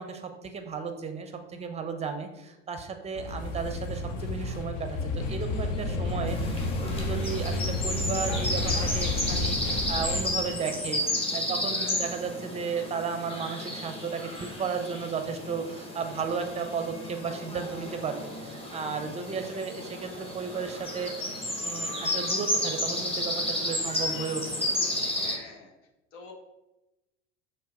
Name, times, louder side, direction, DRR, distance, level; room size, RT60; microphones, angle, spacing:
voice 1, 0.0-21.1 21.6-24.7, right 5 dB, 20° right, 7 dB, 0.6 m, -34 dB
sound 1, 3.2-10.2, left 2 dB, 55° left, 0.7 m, -31 dB
sound 2, 6.3-25.3, left 1 dB, 15° left, 1.0 m, -32 dB
voice 2, 11.7-12.1 18.9-19.4 19.7-19.9 25.1-25.7 26.1-26.3, left 4 dB, 70° left, 0 dB, 1.1 m, -48 dB
4.5 x 2.5 x 4.7 m, 0.99 s
figure-of-eight pair, 70°, 37 cm